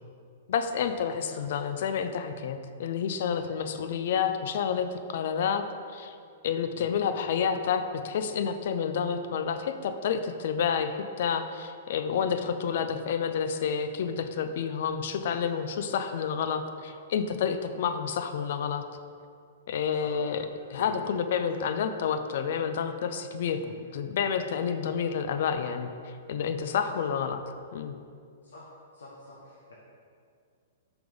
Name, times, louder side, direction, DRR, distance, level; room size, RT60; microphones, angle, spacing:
voice 1, 0.5-5.7 5.9-6.1 6.4-18.8 19.7-23.6 23.9-27.4 27.7-27.9, left 7 dB, 65° left, 9 dB, 0.4 m, -29 dB
voice 2, 1.1-1.6 6.7-7.0 20.0-20.2 20.8-21.5 23.6-23.8 26.9-27.0 28.4-28.7 28.9-29.8, left 2 dB, 85° left, -5 dB, 1.1 m, -46 dB
5.8 x 3.5 x 5.2 m, 2.2 s
hypercardioid pair, 135°, 0 cm